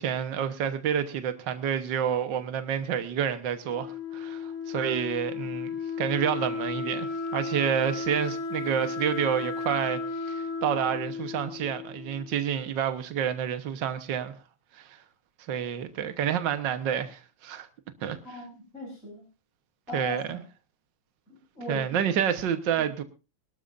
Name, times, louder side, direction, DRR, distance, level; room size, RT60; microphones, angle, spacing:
voice 1, 0.0-5.7 6.0-14.3 14.7-15.0 15.5-17.7 18.0-18.2 19.9-20.4 21.7-23.0, right 8 dB, 80° right, 1.0 m, -29 dB
Wind instrument woodwind instrument, 3.6-12.4, left 4 dB, 80° left, 6.7 m, -34 dB
voice 2, 18.2-19.2 19.9-20.4 21.3-22.0 22.8-22.9, left 2 dB, 20° left, 6.7 m, -39 dB
23.5 x 12.5 x 2.6 m
omnidirectional pair, 3.7 m